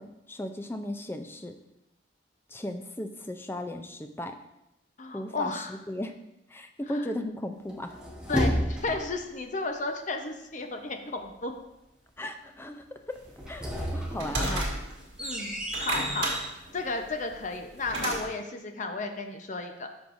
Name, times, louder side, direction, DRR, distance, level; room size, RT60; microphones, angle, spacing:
voice 1, 0.0-1.6 2.5-4.4 5.1-6.1 6.5-8.0 12.2-13.2 13.5-14.7, left 1 dB, 10° left, 6 dB, 0.4 m, -36 dB
voice 2, 5.0-5.8 6.9-7.0 8.3-11.5 14.5-14.8 15.2-16.3 16.7-19.9, left 3 dB, 40° left, 5 dB, 0.8 m, -34 dB
sound 1, 7.7-9.2 13.2-16.5, equal, 5° right, 1.0 m, -32 dB
sound 2, 13.4-15.1 15.6-18.2, right 2 dB, 65° right, 1.9 m, -32 dB
12.5 x 5.3 x 2.6 m, 0.90 s
head